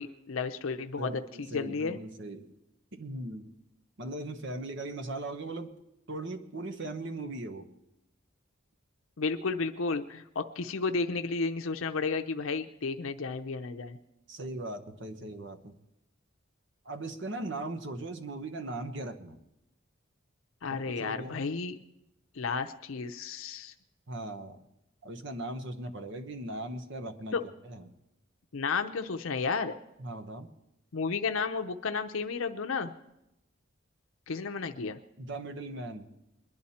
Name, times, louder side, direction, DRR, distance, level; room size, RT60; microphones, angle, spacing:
voice 1, 0.0-2.0 9.2-14.0 20.6-21.8 22.3-23.7 27.3-27.4 28.5-29.7 30.9-32.9 34.3-35.0, left 4 dB, 80° left, 6 dB, 0.6 m, -32 dB
voice 2, 1.0-2.5 2.9-3.5 4.0-5.7 6.1-7.7 14.3-15.8 16.8-19.4 20.7-21.4 24.1-24.6 25.0-27.4 27.6-27.9 30.0-30.5 35.2-36.1, right 2 dB, 60° right, 8 dB, 1.1 m, -39 dB
22.0 x 11.0 x 4.3 m, 0.89 s
head